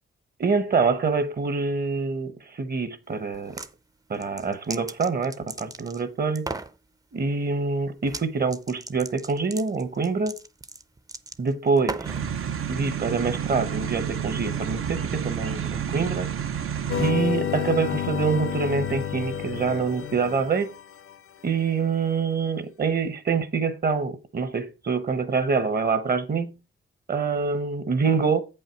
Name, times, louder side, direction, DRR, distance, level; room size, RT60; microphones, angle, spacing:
voice 1, 0.4-3.6 4.1-6.5 7.1-10.3 11.4-12.1 12.7-16.3 17.0-20.7 21.4-26.5 27.1-28.4, right 5 dB, 45° right, 0.9 m, -25 dB
sound 1, 3.3-3.7 4.1-6.0 6.4-6.7 8.0-8.3 8.5-12.3, right 3 dB, 15° right, 0.4 m, -36 dB
sound 2, 12.0-17.1, right 8 dB, 90° right, 0.7 m, -30 dB
sound 3, 16.9-21.1, left 8 dB, 85° left, 0.6 m, -30 dB
8.4 x 5.5 x 4.5 m
wide cardioid pair, 160°, 21 cm